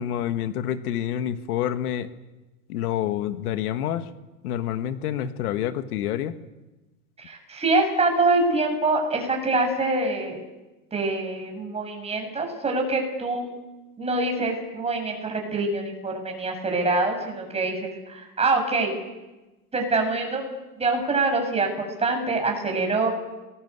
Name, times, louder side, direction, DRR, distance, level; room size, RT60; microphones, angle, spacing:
voice 1, 0.0-2.1 2.7-4.1 4.4-6.3, left 11 dB, 75° left, 9 dB, 1.8 m, -27 dB
voice 2, 7.2-10.4 10.9-13.5 14.0-18.9 19.7-20.5 20.8-23.1, right 3 dB, 15° right, 2 dB, 7.2 m, -25 dB
30.0 x 21.0 x 8.3 m, 1.1 s
supercardioid pair, 135°, 46 cm